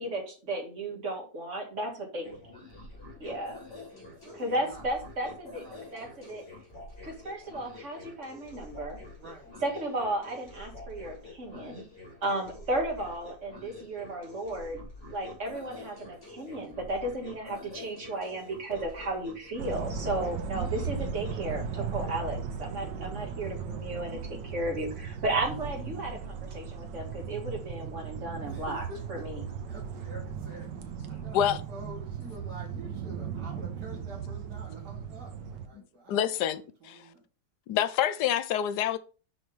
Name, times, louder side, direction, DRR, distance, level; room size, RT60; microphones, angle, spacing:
voice 1, 0.0-2.3 3.2-3.5 4.3-6.4 7.0-9.0 9.6-11.8 12.2-14.8 15.1-28.8 29.1-29.5, right 2 dB, 45° right, 2.1 m, -34 dB
sound 1, 2.2-22.1, left 2 dB, 25° left, 3.2 m, -47 dB
voice 2, 3.9-4.9 5.5-5.9 9.2-9.6 23.2-23.7 28.5-37.2, right 1 dB, 65° right, 2.2 m, -48 dB
sound 2, 19.6-35.7, right 6 dB, 90° right, 1.5 m, -37 dB
voice 3, 36.1-37.0 37.7-39.0, left 10 dB, 75° left, 1.2 m, -27 dB
6.3 x 5.9 x 3.5 m
omnidirectional pair, 1.9 m